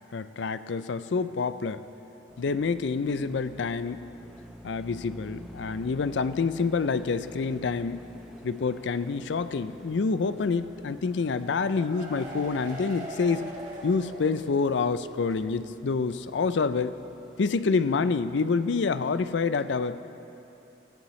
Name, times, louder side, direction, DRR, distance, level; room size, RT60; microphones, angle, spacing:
voice 1, 0.1-1.8 2.4-4.0 4.6-8.1 8.4-13.4 13.8-17.0 17.4-20.0, left 4 dB, 75° left, 13 dB, 0.4 m, -27 dB
sound 1, 2.3-19.2, equal, ahead, 1.0 m, -50 dB
sound 2, 11.3-15.0 15.3-15.4 15.7-15.8, right 1 dB, 40° right, 2.0 m, -41 dB
21.0 x 14.5 x 3.2 m, 2.9 s
head